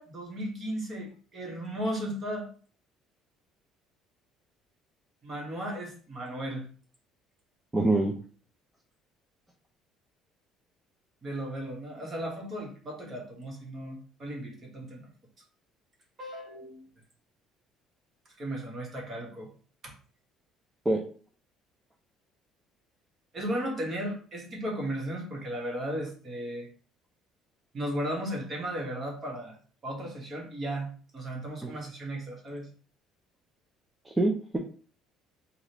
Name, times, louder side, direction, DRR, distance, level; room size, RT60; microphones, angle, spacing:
voice 1, 0.0-2.5 5.2-6.7 11.2-15.1 16.2-16.8 18.4-19.5 19.8-19.9 23.3-26.7 27.7-29.6 29.8-32.7, right 1 dB, 30° right, -1 dB, 1.3 m, -35 dB
voice 2, 7.7-8.1 20.9-21.0 31.6-31.7 34.1-34.6, right 2 dB, 10° right, -1 dB, 0.5 m, -25 dB
4.9 x 2.5 x 2.9 m, 0.42 s
cardioid pair, 145°, 0 cm